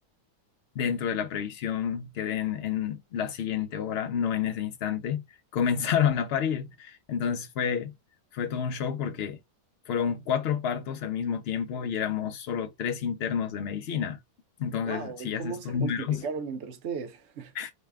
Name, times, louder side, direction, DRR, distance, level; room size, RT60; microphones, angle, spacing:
voice 1, 0.8-7.9 8.3-9.4 9.9-14.2 14.6-16.3 17.5-17.7, left 8 dB, 90° left, 0.5 m, -29 dB
voice 2, 14.8-17.5, right 5 dB, 55° right, 0.9 m, -36 dB
4.0 x 2.2 x 3.4 m
omnidirectional pair, 1.7 m